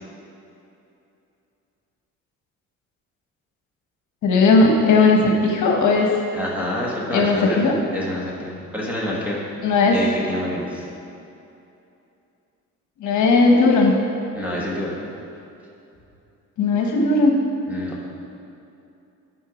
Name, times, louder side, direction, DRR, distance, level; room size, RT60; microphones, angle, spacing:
voice 1, 4.2-6.1 7.1-7.7 9.6-10.0 13.0-13.9 16.6-17.3, left 3 dB, 60° left, 1 dB, 1.3 m, -17 dB
voice 2, 6.3-7.6 7.9-9.4 9.9-10.9 14.3-15.0 17.7-17.9, left 1 dB, 5° right, -4 dB, 1.7 m, -27 dB
10.0 x 5.6 x 5.1 m, 2.7 s
cardioid pair, 135°, 33 cm